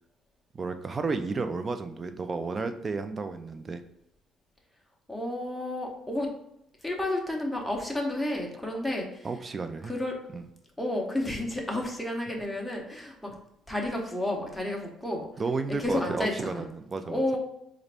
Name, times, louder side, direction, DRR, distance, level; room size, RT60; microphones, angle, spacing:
voice 1, 0.5-3.8 9.2-9.9 10.3-10.5 15.4-17.2, right 4 dB, 25° right, 9 dB, 0.3 m, -32 dB
voice 2, 5.1-6.3 6.8-9.3 9.8-10.2 10.8-13.3 13.7-15.3 15.8-16.7 17.0-17.4, left 1 dB, ahead, -1 dB, 0.7 m, -31 dB
4.0 x 2.5 x 3.3 m, 0.78 s
cardioid pair, 125°, 0 cm